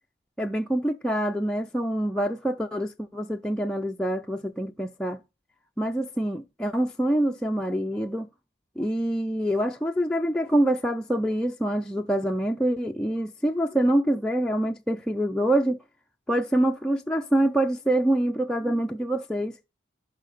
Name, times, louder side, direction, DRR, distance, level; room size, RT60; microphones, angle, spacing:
voice 1, 0.4-5.2 5.8-8.3 8.8-15.8 16.3-19.6, right 1 dB, 5° left, 0.4 m, -25 dB
11.5 x 4.9 x 4.0 m
head